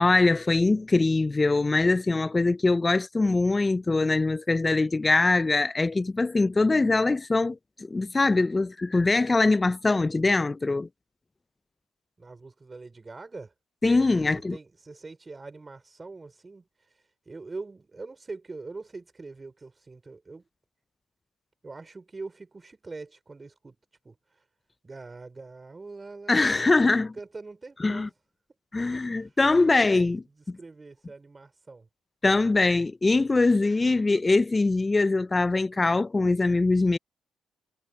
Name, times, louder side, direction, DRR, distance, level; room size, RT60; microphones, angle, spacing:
voice 1, 0.0-10.9 13.8-14.6 26.3-27.1 27.8-28.1 28.7-30.6 32.2-37.0, left 3 dB, 20° left, 0.4 m, -23 dB
voice 2, 12.2-13.5 14.5-20.4 21.6-23.8 24.1-24.5 24.8-28.1 28.8-30.1 30.5-31.9, right 3 dB, 25° right, 5.3 m, -43 dB
cardioid pair, 80°, 0 cm